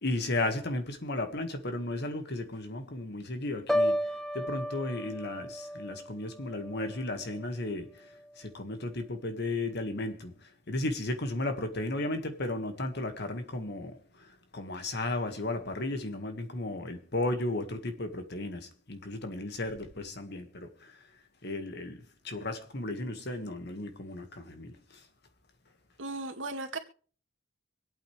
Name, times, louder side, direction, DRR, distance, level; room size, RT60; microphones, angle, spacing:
voice 1, 0.0-4.0 4.3-7.9 8.4-10.3 10.7-13.9 14.5-20.9 21.4-24.8, left 2 dB, 60° left, 1.9 m, -34 dB
Piano, 3.7-7.6 8.0-8.4, equal, ahead, 0.8 m, -33 dB
voice 2, 26.0-26.8, right 2 dB, 80° right, 2.3 m, -36 dB
26.0 x 8.9 x 3.4 m
head